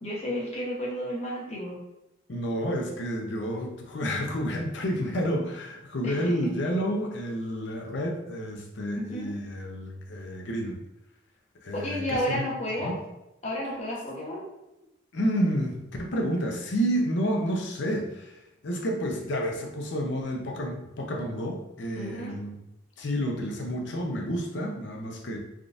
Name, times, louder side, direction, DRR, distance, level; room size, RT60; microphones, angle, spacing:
voice 1, 0.0-1.8 6.0-6.3 8.9-9.3 11.7-12.9 13.4-14.4 22.0-22.3, equal, 35° left, -4 dB, 0.8 m, -32 dB
voice 2, 2.3-10.8 11.6-12.4 12.8-12.9 15.1-22.6 23.0-25.4, equal, 75° left, 1 dB, 0.6 m, -30 dB
3.6 x 2.4 x 2.5 m, 0.90 s
head